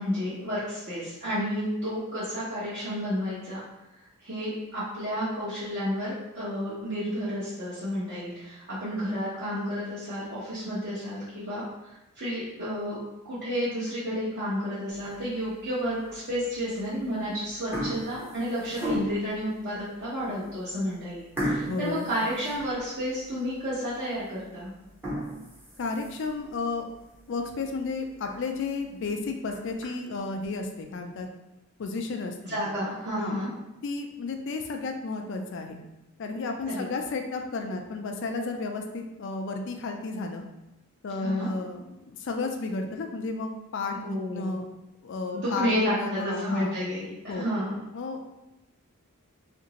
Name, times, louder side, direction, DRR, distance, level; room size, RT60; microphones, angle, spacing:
voice 1, 0.0-3.6 4.2-11.6 12.2-13.0 13.3-24.7 32.4-33.5 36.7-36.9 41.2-41.5 44.0-44.5 45.3-47.8, equal, 50° right, -11 dB, 0.8 m, -31 dB
sound 1, 14.9-15.4 16.0-16.1 17.0-17.2 17.5-19.4 20.0-20.1 20.4-20.6 21.4-23.1 23.5-23.6 24.1-24.2 24.8-26.4 26.9-27.0 27.4-27.5 27.8-27.9 28.2-28.3 29.2-29.8, equal, 10° right, 0.6 m, -34 dB
voice 2, 21.7-22.1 25.8-26.9 27.3-31.3 31.8-32.6 33.2-33.4 33.8-35.8 36.2-40.4 41.0-44.6 45.0-46.7 47.3-47.5 47.9-48.2, left 3 dB, 55° left, 4 dB, 0.4 m, -32 dB
2.8 x 2.5 x 2.9 m, 0.94 s
head